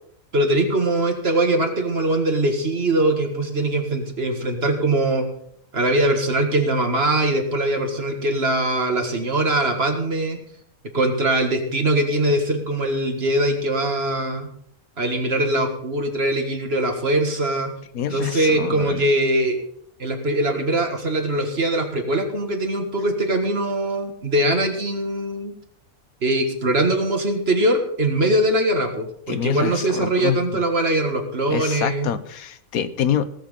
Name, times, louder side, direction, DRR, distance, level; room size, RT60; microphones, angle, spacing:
voice 1, 0.3-5.3 5.7-10.4 10.9-14.5 15.0-17.7 18.1-19.6 20.0-25.5 26.2-32.1, right 1 dB, 45° right, 5 dB, 2.0 m, -22 dB
voice 2, 17.9-19.0 29.3-30.6 31.5-33.2, left 9 dB, 85° left, 13 dB, 1.3 m, -26 dB
18.0 x 7.1 x 5.5 m, 0.67 s
omnidirectional pair, 1.5 m